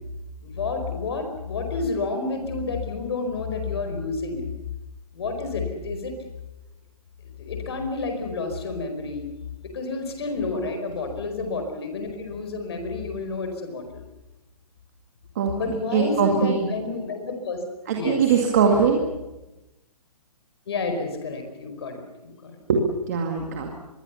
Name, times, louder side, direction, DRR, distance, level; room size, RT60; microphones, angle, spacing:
voice 1, 0.4-4.5 5.1-6.1 7.4-9.3 9.7-14.0 15.5-17.6 17.9-18.2 18.6-18.7 20.7-22.5, left 3 dB, 40° left, 5 dB, 4.9 m, -30 dB
voice 2, 15.9-16.7 17.9-19.1 22.7-22.8 23.1-23.7, right 6 dB, 25° right, 1 dB, 2.1 m, -21 dB
24.5 x 22.5 x 7.1 m, 1.0 s
hypercardioid pair, 175°, 20 cm